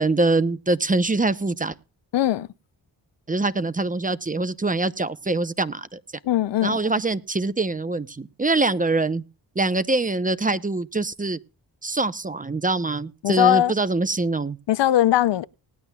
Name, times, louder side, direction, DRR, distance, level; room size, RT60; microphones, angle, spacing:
voice 1, 0.0-1.7 3.3-6.0 6.6-9.2 9.6-11.4 11.8-14.6, right 3 dB, 20° right, 0.7 m, -24 dB
voice 2, 2.1-2.5 6.2-6.8 13.2-13.7 14.7-15.5, left 13 dB, 75° left, 0.6 m, -20 dB
19.0 x 10.5 x 2.3 m
cardioid pair, 80°, 43 cm